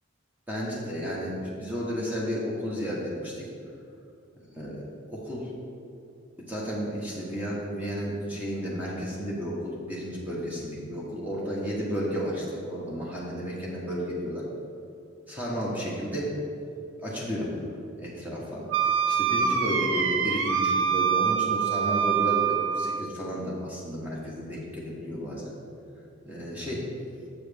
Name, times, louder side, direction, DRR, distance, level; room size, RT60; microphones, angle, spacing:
voice 1, 0.5-3.5 4.4-4.8 5.1-5.5 6.5-14.5 15.3-16.3 17.0-17.6 18.0-18.6 19.1-25.5 26.3-26.8, equal, 10° right, -6 dB, 1.1 m, -32 dB
Wind instrument woodwind instrument, 18.7-23.1, right 7 dB, 75° right, 0.5 m, -25 dB
7.2 x 7.2 x 3.4 m, 2.6 s
head